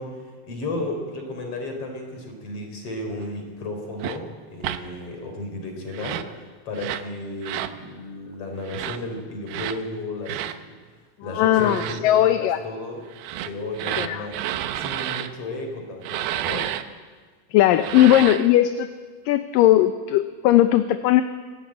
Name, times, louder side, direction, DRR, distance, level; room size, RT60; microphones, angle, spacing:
voice 1, 0.0-6.2 6.7-10.8 11.2-13.0 13.4-14.4 14.8-16.7, left 2 dB, 40° left, 4 dB, 4.7 m, -33 dB
sound 1, 4.0-4.2 4.6-4.8 5.9-6.3 6.8-7.1 7.4-7.8 8.6-9.0 9.5-9.8 10.3-10.6 11.5-12.0 13.1-15.3 16.0-16.8 17.7-18.5, right 12 dB, 85° right, 2.7 m, -30 dB
voice 2, 11.3-12.6 14.0-14.3 17.5-18.9 19.3-21.2, left 13 dB, 75° left, 10 dB, 2.3 m, -18 dB
24.0 x 17.5 x 8.8 m, 1.5 s
omnidirectional pair, 4.2 m